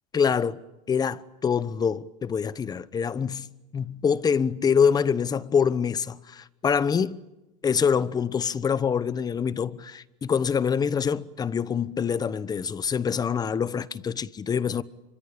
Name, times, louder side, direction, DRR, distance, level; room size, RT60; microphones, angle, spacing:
voice 1, 0.1-0.6 0.9-3.5 3.7-7.2 7.6-14.8, left 6 dB, 20° left, 1.0 m, -25 dB
26.0 x 24.0 x 8.7 m
supercardioid pair, 125°, 18 cm